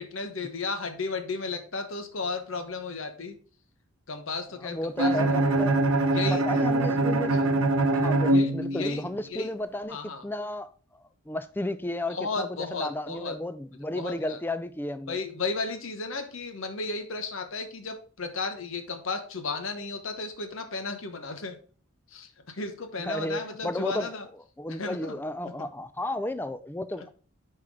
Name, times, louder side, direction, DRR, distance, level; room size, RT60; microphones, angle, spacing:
voice 1, 0.0-3.4 4.1-5.2 6.1-6.6 8.3-9.0 9.3-9.5 9.9-10.2 12.1-13.4 13.9-14.4 15.1-21.6 22.1-24.2 24.7-25.2 25.4-25.7, left 3 dB, 65° left, 1.0 m, -34 dB
voice 2, 4.6-5.8 6.3-7.4 7.9-10.7 11.3-15.2 23.1-24.1 24.6-27.1, left 1 dB, 10° left, 0.3 m, -33 dB
Bowed string instrument, 5.0-9.1, right 2 dB, 80° right, 0.9 m, -23 dB
6.1 x 4.4 x 4.8 m
head